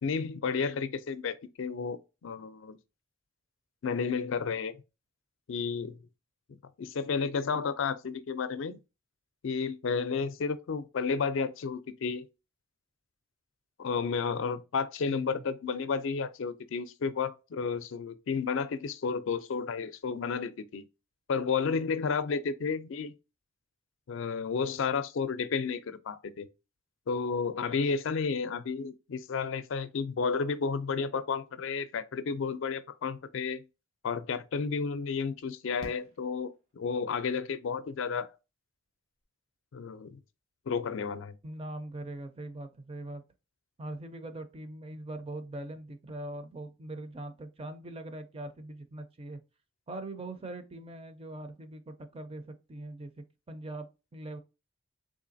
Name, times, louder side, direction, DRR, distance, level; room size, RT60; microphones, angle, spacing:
voice 1, 0.0-2.8 3.8-4.7 5.5-6.0 6.8-8.7 9.4-12.2 13.8-20.9 21.3-23.1 24.1-26.5 27.1-33.6 34.0-38.3 39.7-40.2 40.7-41.4, left 5 dB, 70° left, 0.4 m, -32 dB
voice 2, 15.1-15.4 41.4-43.2 43.8-49.4 49.9-54.4, right 2 dB, 30° right, 0.4 m, -42 dB
Fireworks, 35.8-37.1 38.9-39.0 39.2-39.3, equal, 80° right, 1.4 m, -49 dB
3.7 x 3.0 x 2.5 m
head